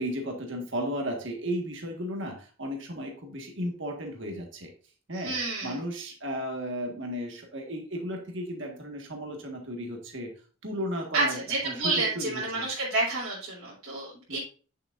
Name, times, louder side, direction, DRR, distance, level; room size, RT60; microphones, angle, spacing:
voice 1, 0.0-4.7 5.1-5.3 5.6-10.3 10.6-12.6 14.3-14.4, equal, 60° right, 2 dB, 1.8 m, -34 dB
voice 2, 5.1-5.8 11.1-14.4, right 3 dB, 85° right, -7 dB, 3.6 m, -29 dB
9.1 x 7.5 x 2.6 m, 0.38 s
head